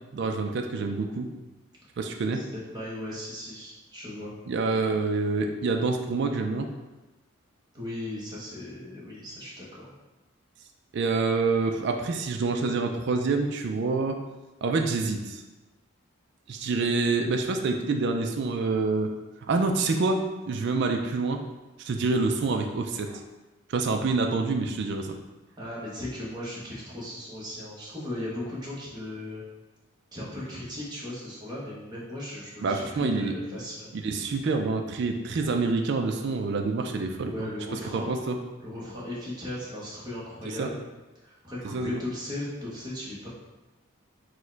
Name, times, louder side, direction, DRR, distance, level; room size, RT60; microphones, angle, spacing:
voice 1, 0.1-1.3 2.0-2.4 4.5-6.7 10.9-14.2 14.6-15.4 16.5-19.1 19.5-21.4 21.8-23.2 23.7-25.1 32.6-33.3 33.9-37.3 37.9-38.4 40.5-40.7 41.6-42.0, right 3 dB, 55° right, 4 dB, 0.3 m, -27 dB
voice 2, 2.7-4.3 7.7-9.9 25.6-29.4 30.1-33.9 37.3-38.1 38.6-40.8 41.2-43.3, left 1 dB, 20° right, -6 dB, 1.0 m, -37 dB
4.5 x 2.2 x 4.4 m, 1.1 s
head